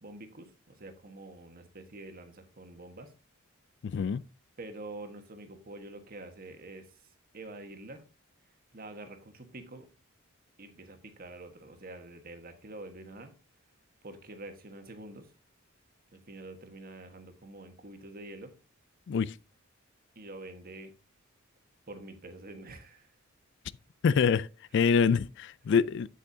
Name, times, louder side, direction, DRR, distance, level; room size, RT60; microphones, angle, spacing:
voice 1, 0.0-3.1 4.6-7.0 7.3-8.0 8.7-9.9 10.6-13.3 14.0-15.3 16.1-18.5 20.1-20.9 21.9-23.1, right 2 dB, 45° right, 1.4 m, -46 dB
voice 2, 3.8-4.2 19.1-19.4 24.0-24.5 24.7-26.1, left 6 dB, 55° left, 0.3 m, -25 dB
8.4 x 8.2 x 2.7 m
head